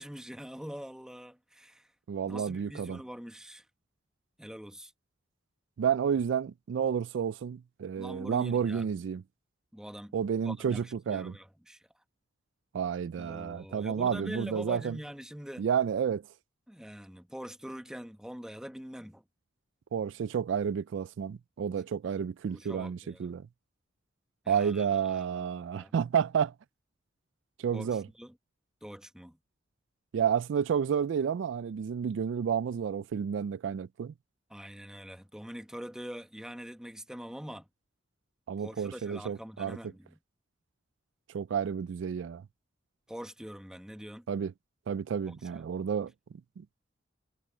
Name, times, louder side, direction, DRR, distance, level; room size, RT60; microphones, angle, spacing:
voice 1, 0.0-1.9 2.3-3.6 4.4-4.9 8.0-8.9 9.7-10.2 10.4-11.9 13.2-15.7 16.7-19.2 22.5-23.3 24.4-25.5 25.7-25.9 27.7-28.3 28.8-29.4 34.5-37.7 38.6-40.2 43.1-44.3 45.3-45.6, equal, 5° right, 1.0 m, -44 dB
voice 2, 2.1-3.0 5.8-9.2 10.1-11.4 12.7-15.0 15.6-16.2 19.9-23.4 24.5-26.5 27.6-28.1 30.1-34.1 38.5-39.8 41.3-42.4 44.3-44.5 44.9-46.1 46.6-46.7, right 7 dB, 70° right, 0.3 m, -30 dB
head